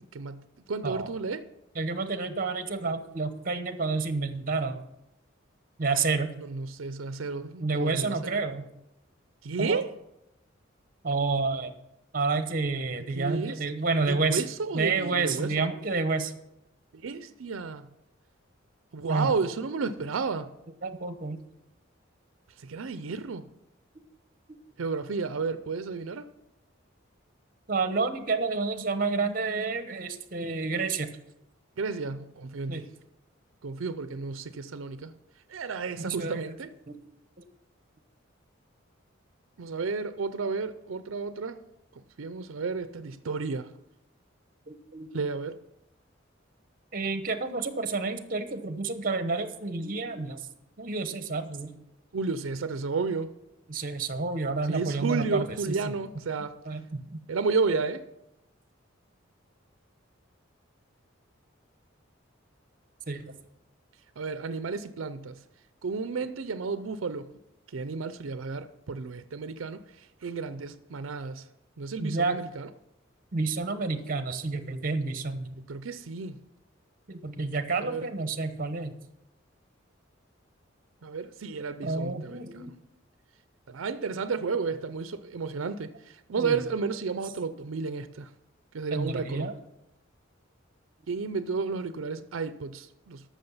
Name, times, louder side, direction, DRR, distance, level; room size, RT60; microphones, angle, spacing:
voice 1, 0.1-0.4 0.7-1.5 6.4-8.3 9.4-9.9 13.2-13.5 14.1-15.7 16.9-17.8 18.9-20.5 22.6-23.4 24.8-26.2 31.8-32.9 33.6-35.1 35.5-36.7 39.6-41.6 42.2-43.7 45.1-45.6 52.1-53.3 54.7-56.6 57.3-58.1 64.2-65.4 65.8-67.3 67.7-69.8 70.2-71.4 71.8-72.7 75.6-76.4 77.8-78.1 81.0-82.6 83.7-88.3 88.7-89.5 91.1-93.2, right 4 dB, 90° right, 0.5 m, -32 dB
voice 2, 1.7-4.8 5.8-6.3 7.6-8.7 9.6-9.8 11.0-11.7 12.1-14.4 14.7-16.3 19.1-19.3 20.8-21.4 27.7-31.1 32.7-32.8 36.0-36.4 36.9-37.0 44.7-45.1 46.9-50.4 50.8-51.8 53.7-55.9 56.6-57.2 63.1-63.3 72.0-72.4 73.3-75.5 77.1-78.9 81.8-82.7 86.4-86.6 88.9-89.5, right 3 dB, 45° right, 1.0 m, -29 dB
13.0 x 6.4 x 5.6 m
head